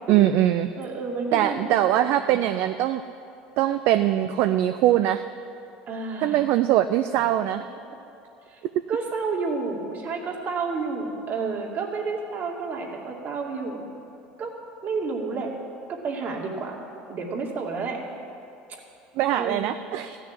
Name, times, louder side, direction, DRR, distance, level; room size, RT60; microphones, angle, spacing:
voice 1, 0.1-0.7 1.3-3.0 3.6-5.2 6.2-7.6 19.2-20.2, right 12 dB, 65° right, 9 dB, 0.4 m, -22 dB
voice 2, 0.8-1.7 2.0-2.5 5.9-6.5 8.5-8.6 8.9-13.9 14.4-14.5 14.8-15.5 15.9-16.8 17.1-18.0 19.4-19.7, right 4 dB, 45° right, -1 dB, 2.6 m, -30 dB
14.5 x 6.4 x 10.0 m, 2.7 s
supercardioid pair, 90°, 4 cm